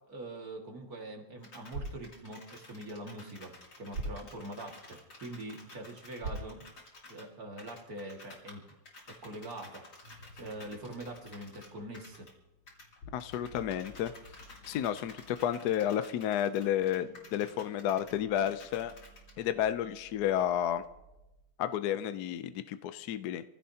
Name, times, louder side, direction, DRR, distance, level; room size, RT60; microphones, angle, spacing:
voice 1, 0.1-6.7 7.1-8.6 9.2-10.1 10.3-12.3, right 1 dB, 45° right, 2 dB, 2.4 m, -44 dB
sound 1, 1.4-7.3 7.6-12.3 12.7-19.3, left 2 dB, 50° left, 3.4 m, -53 dB
sound 2, 1.5-7.6, right 2 dB, 75° right, 3.8 m, -45 dB
sound 3, 10.0-21.4, left 2 dB, 90° left, 3.4 m, -57 dB
voice 2, 13.1-14.1 14.7-18.9 19.4-20.8 21.6-23.4, left 10 dB, 75° left, 11 dB, 0.9 m, -31 dB
26.5 x 16.0 x 2.8 m, 0.94 s
omnidirectional pair, 2.4 m